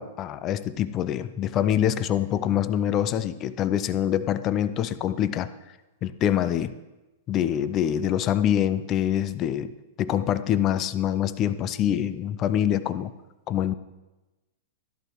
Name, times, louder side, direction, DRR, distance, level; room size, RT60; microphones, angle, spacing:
voice 1, 0.0-5.5 6.0-6.7 7.3-9.7 10.0-13.1 13.5-13.7, left 10 dB, 35° left, 14 dB, 0.5 m, -25 dB
13.0 x 11.5 x 3.1 m, 1.1 s
hypercardioid pair, 115°, 0 cm